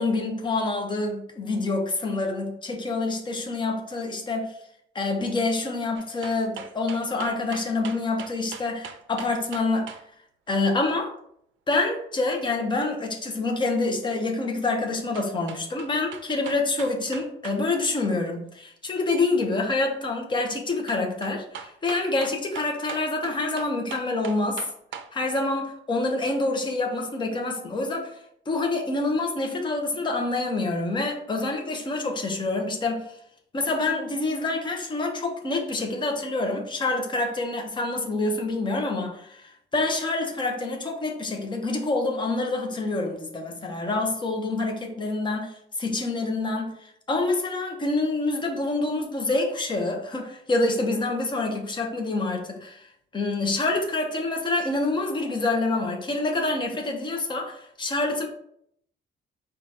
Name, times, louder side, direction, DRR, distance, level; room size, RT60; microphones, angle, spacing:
voice 1, 0.0-4.5 4.9-10.0 10.5-11.1 11.7-24.6 25.1-28.1 28.5-33.0 33.5-52.9 53.1-58.3, left 2 dB, 20° left, 3 dB, 0.6 m, -27 dB
sound 1, 5.9-10.0 15.1-17.6 17.9-18.0 20.9-25.1 25.5-25.6, right 7 dB, 65° right, 0.4 m, -40 dB
4.8 x 2.3 x 4.0 m, 0.70 s
cardioid pair, 170°, 21 cm